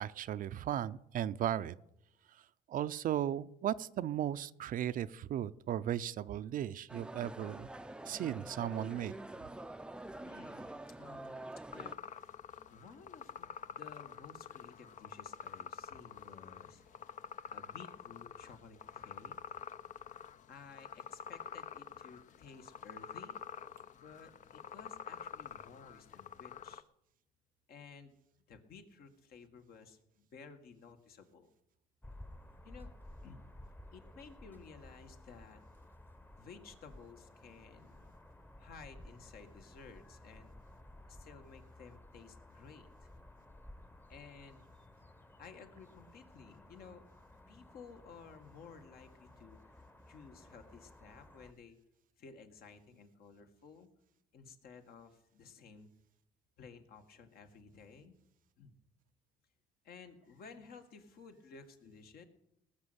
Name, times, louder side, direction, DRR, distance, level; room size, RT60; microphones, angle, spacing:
voice 1, 0.0-1.8 2.3-7.7 8.1-9.1, right 11 dB, 55° right, 14 dB, 0.5 m, -36 dB
sound 1, 6.9-11.9, right 2 dB, 5° right, 0.5 m, -46 dB
voice 2, 10.2-11.4 11.7-12.0 12.7-19.6 20.5-23.4 24.0-26.8 27.7-28.1 28.5-31.5 32.6-32.9 33.2-33.4 33.9-35.6 36.4-38.1 38.6-40.5 41.1-43.1 44.1-44.6 45.4-47.1 47.5-51.8 52.2-53.9 54.3-55.9 56.6-58.1 58.6-58.7 59.8-62.2, left 5 dB, 65° left, 6 dB, 1.9 m, -55 dB
sound 2, 11.7-26.8, left 7 dB, 50° left, 0.6 m, -48 dB
sound 3, 32.0-51.5, left 1 dB, 10° left, 1.0 m, -56 dB
18.5 x 6.6 x 8.1 m, 0.80 s
cardioid pair, 110°, 17 cm